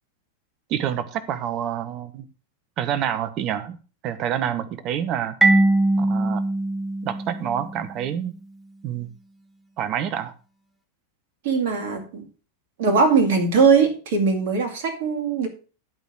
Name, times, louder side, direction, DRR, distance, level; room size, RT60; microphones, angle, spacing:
voice 1, 0.7-2.3 2.8-3.8 4.0-5.4 6.0-6.4 7.0-8.3 8.8-9.1 9.8-10.3, right 9 dB, 35° right, 1.1 m, -27 dB
Marimba xylophone, 5.4-8.0, right 2 dB, 5° right, 1.3 m, -21 dB
voice 2, 11.4-12.3 12.8-15.5, right 5 dB, 50° right, 2.2 m, -20 dB
11.5 x 5.2 x 6.2 m
figure-of-eight pair, 90°, 0 cm